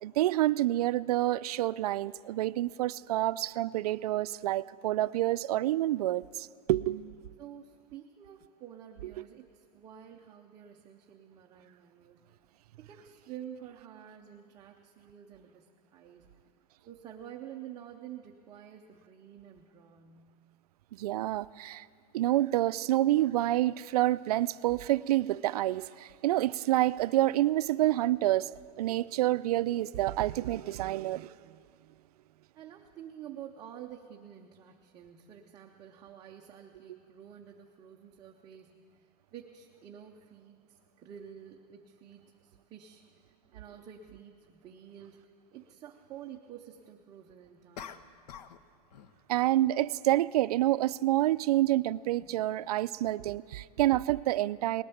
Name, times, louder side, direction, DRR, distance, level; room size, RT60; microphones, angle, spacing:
voice 1, 0.0-7.2 20.9-21.9 22.1-31.3 49.3-54.8, right 15 dB, 70° right, 17 dB, 0.4 m, -28 dB
voice 2, 7.4-12.2 12.8-16.3 16.9-20.4 32.5-45.2 45.5-48.1 52.2-52.3, right 10 dB, 15° right, 1 dB, 0.5 m, -49 dB
sound 1, 43.7-43.8 47.8-48.6 48.9-49.2, left 8 dB, 80° left, 0.8 m, -46 dB
19.0 x 10.0 x 7.0 m, 2.3 s
supercardioid pair, 170°, 21 cm